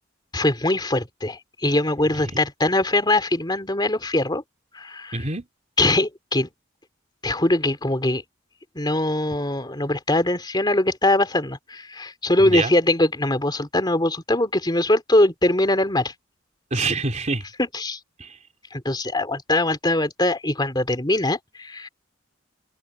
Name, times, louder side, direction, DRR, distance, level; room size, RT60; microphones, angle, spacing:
voice 1, 0.3-4.4 4.7-5.2 5.8-6.5 7.2-8.2 8.7-16.1 17.6-18.0 18.7-21.9, left 1 dB, 20° left, 3.0 m, -22 dB
voice 2, 5.1-5.4 12.4-12.7 16.7-17.4 18.2-18.4, right 3 dB, 35° right, 3.3 m, -26 dB
head